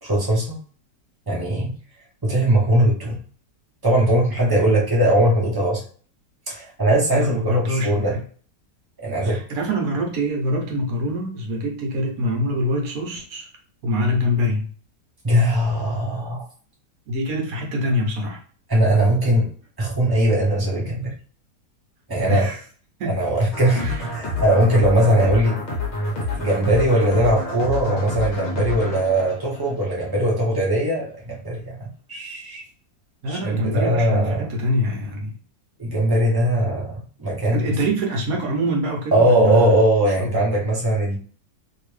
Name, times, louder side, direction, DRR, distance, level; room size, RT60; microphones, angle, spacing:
voice 1, 0.0-0.5 1.3-1.7 2.2-3.2 3.8-5.8 6.5-8.1 9.0-9.4 15.2-16.5 18.7-19.5 19.8-21.1 22.1-22.5 23.1-25.6 26.1-32.6 33.3-34.5 35.8-37.6 39.1-41.2, right 1 dB, 35° right, -4 dB, 0.3 m, -20 dB
voice 2, 7.1-8.2 9.2-13.5 13.8-14.7 17.1-18.4 22.2-22.6 23.0-23.2 23.8-24.1 33.2-35.3 37.5-39.8 40.2-40.3, equal, 60° right, 1 dB, 1.2 m, -24 dB
sound 1, 23.5-30.3, left 3 dB, 55° left, 0.8 m, -28 dB
2.9 x 2.8 x 3.1 m, 0.43 s
omnidirectional pair, 1.9 m